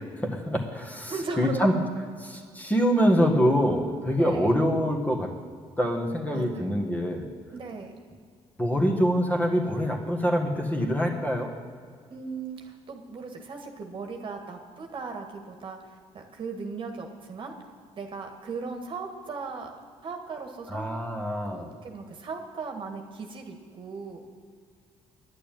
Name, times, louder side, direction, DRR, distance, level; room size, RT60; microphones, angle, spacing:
voice 1, 0.2-1.8 2.2-5.3 5.8-7.3 8.6-11.5 20.7-21.7, equal, 15° left, 1 dB, 1.9 m, -25 dB
voice 2, 1.1-1.6 4.2-4.6 6.3-6.7 7.5-7.9 12.1-15.8 16.1-17.5 18.0-19.7 20.0-21.0 21.5-24.3, right 4 dB, 45° right, 3 dB, 1.6 m, -37 dB
11.0 x 6.6 x 9.3 m, 2.1 s
cardioid pair, 85°, 12 cm